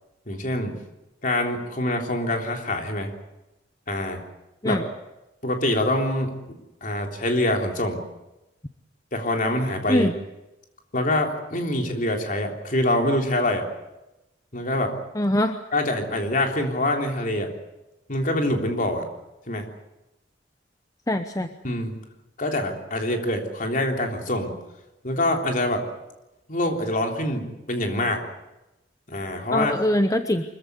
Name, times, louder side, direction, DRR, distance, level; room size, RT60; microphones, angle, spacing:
voice 1, 0.3-0.7 1.2-3.1 3.9-4.2 4.6-4.8 5.4-8.1 9.1-10.1 10.9-13.7 14.5-14.9 15.7-17.5 18.1-19.1 19.5-19.7 21.6-22.0 22.4-24.5 25.0-25.8 26.5-28.2 29.1-29.7, left 1 dB, 45° left, 3 dB, 3.6 m, -25 dB
voice 2, 15.2-15.6 21.1-21.5 29.5-30.4, left 1 dB, 20° left, 8 dB, 0.9 m, -22 dB
24.5 x 15.0 x 9.7 m, 0.96 s
head